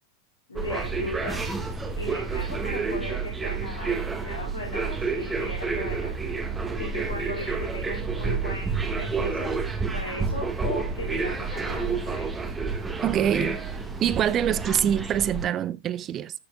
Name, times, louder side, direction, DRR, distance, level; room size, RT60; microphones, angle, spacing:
voice 1, 0.5-1.4 2.0-6.1 6.8-9.5 9.9-12.2, left 2 dB, 80° left, 3.5 m, -37 dB
sound 1, 0.6-15.5, right 4 dB, 15° right, 1.6 m, -29 dB
voice 2, 13.0-13.6 14.0-16.3, right 10 dB, 30° right, 0.6 m, -25 dB
14.0 x 6.9 x 2.3 m
figure-of-eight pair, 90°, 0 cm